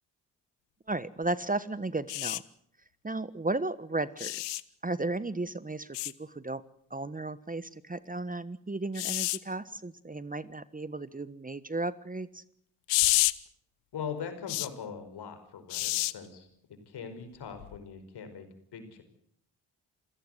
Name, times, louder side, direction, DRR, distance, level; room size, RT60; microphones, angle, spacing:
voice 1, 0.9-2.4 3.0-6.6 6.9-12.4, right 2 dB, 20° right, 16 dB, 1.3 m, -34 dB
sound 1, 2.1-2.4 4.2-4.6 5.9-6.1 8.9-9.4 12.9-13.3 14.5-14.7 15.7-16.1 17.6-17.8, left 23 dB, 85° left, 0.8 m, -28 dB
voice 2, 13.9-19.0, left 6 dB, 70° left, 8 dB, 5.2 m, -41 dB
27.5 x 16.0 x 8.0 m, 0.69 s
hypercardioid pair, 40°, 42 cm